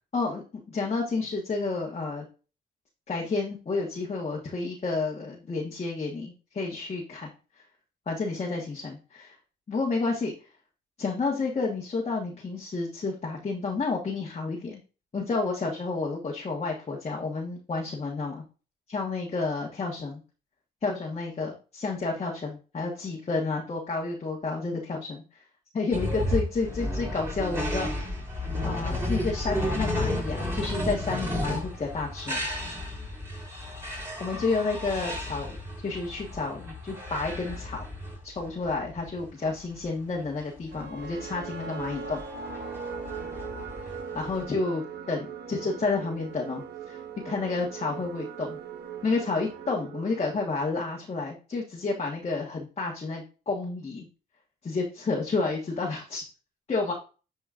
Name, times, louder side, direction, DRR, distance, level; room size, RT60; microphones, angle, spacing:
voice 1, 0.1-2.2 3.1-7.3 8.1-9.3 9.7-10.3 11.0-14.8 15.1-18.4 18.9-20.2 20.8-21.5 21.8-25.2 25.7-28.1 28.6-32.5 34.2-35.6 35.8-37.9 38.2-42.2 44.1-44.8 45.1-48.6 49.0-54.1 54.6-56.2 56.7-56.9, left 3 dB, 35° left, -2 dB, 1.5 m, -30 dB
sound 1, 25.9-44.4, left 1 dB, 15° right, 3.8 m, -33 dB
sound 2, 40.7-50.9, right 7 dB, 55° right, 1.1 m, -40 dB
10.0 x 4.3 x 2.6 m, 0.34 s
cardioid pair, 90°, 20 cm